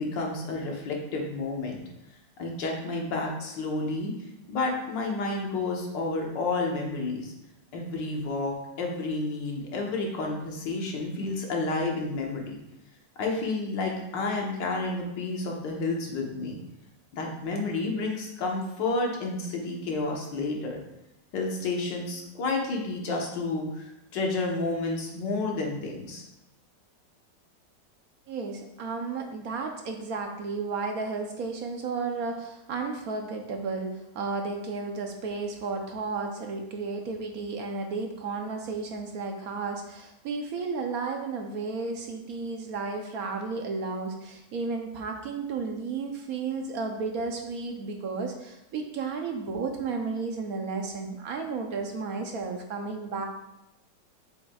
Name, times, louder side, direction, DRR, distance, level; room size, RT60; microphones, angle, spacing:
voice 1, 0.0-1.8 2.4-4.1 4.5-7.3 7.7-12.6 13.2-16.6 17.1-20.8 21.3-26.2, left 3 dB, 85° left, 0 dB, 1.8 m, -30 dB
voice 2, 28.3-53.3, right 4 dB, 65° right, 3 dB, 1.1 m, -33 dB
7.6 x 5.9 x 2.3 m, 0.88 s
omnidirectional pair, 1.9 m